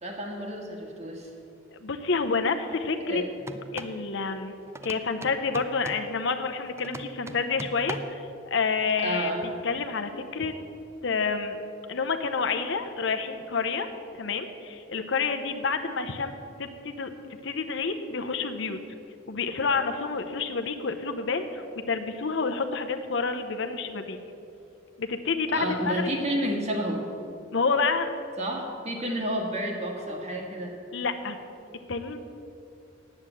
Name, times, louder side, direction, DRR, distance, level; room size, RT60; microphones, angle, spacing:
voice 1, 0.0-1.3 3.1-3.3 9.0-9.4 25.5-27.1 28.4-30.8, right 1 dB, 35° right, 1 dB, 1.7 m, -30 dB
voice 2, 1.8-3.2 3.7-4.5 4.8-10.5 11.0-11.6 11.9-13.9 14.1-16.3 16.6-17.1 17.4-18.8 19.3-24.2 25.0-26.4 27.5-28.1 30.9-31.4 31.9-32.2, left 4 dB, 65° left, 7 dB, 0.8 m, -29 dB
sound 1, 3.4-4.0 4.7-6.1 6.8-8.2, right 2 dB, 15° right, 0.4 m, -40 dB
9.5 x 7.9 x 8.5 m, 2.7 s
head